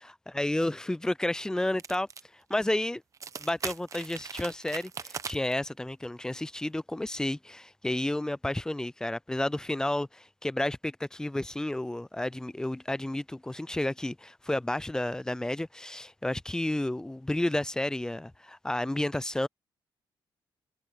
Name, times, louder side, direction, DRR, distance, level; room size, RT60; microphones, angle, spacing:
voice 1, 0.4-2.1 2.3-3.0 3.4-19.5, left 1 dB, 5° left, 0.3 m, -31 dB
sound 1, 1.8-2.2 2.5-2.6 3.1-5.5, right 6 dB, 40° right, 0.8 m, -39 dB
cardioid pair, 120°, 9 cm